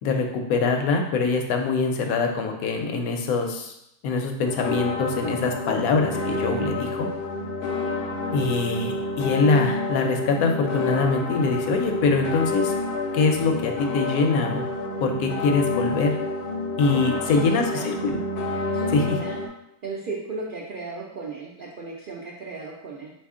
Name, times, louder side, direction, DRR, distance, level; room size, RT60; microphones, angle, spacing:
voice 1, 0.0-3.7 4.0-7.1 8.3-12.7 13.1-14.6 15.0-16.1 16.8-18.2 18.9-19.2, left 4 dB, 75° left, 4 dB, 1.0 m, -23 dB
sound 1, 4.5-19.5, left 2 dB, 90° left, 0.5 m, -29 dB
voice 2, 16.9-17.9 18.7-19.4 19.8-23.1, right 3 dB, 85° right, -3 dB, 0.4 m, -35 dB
4.1 x 2.7 x 3.6 m, 0.82 s
omnidirectional pair, 1.6 m